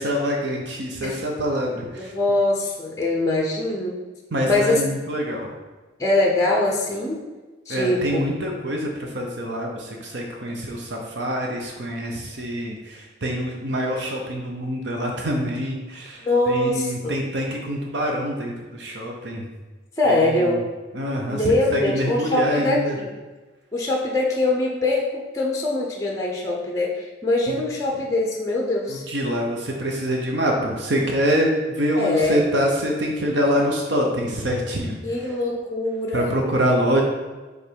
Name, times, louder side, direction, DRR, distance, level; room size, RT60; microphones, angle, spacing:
voice 1, 0.0-2.1 4.3-5.5 7.7-19.4 20.1-20.6 20.9-23.0 28.9-35.0 36.1-37.0, equal, 65° right, 0 dB, 0.8 m, -25 dB
voice 2, 2.0-4.0 4.4-4.8 6.0-7.2 7.7-8.2 16.2-17.2 20.0-20.6 21.3-23.1 23.7-29.0 32.0-32.4 35.0-36.3, left 2 dB, 15° left, -1 dB, 0.7 m, -23 dB
5.2 x 4.0 x 4.6 m, 1.3 s
head